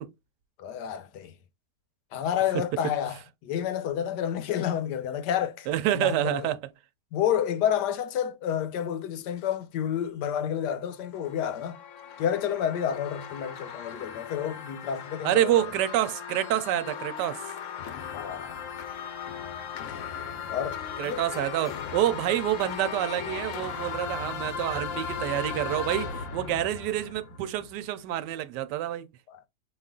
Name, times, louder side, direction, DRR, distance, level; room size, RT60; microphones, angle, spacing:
voice 1, 0.6-1.3 2.1-5.7 5.9-6.5 7.1-11.8 12.2-15.6 18.1-18.6 20.5-20.8 21.0-21.2 29.3-29.4, left 9 dB, 80° left, 1.2 m, -29 dB
voice 2, 5.7-6.6 15.2-17.4 21.0-29.1, right 13 dB, 85° right, 1.2 m, -27 dB
sound 1, 10.9-27.9, left 6 dB, 60° left, 0.8 m, -37 dB
5.5 x 2.4 x 3.6 m
omnidirectional pair, 1.8 m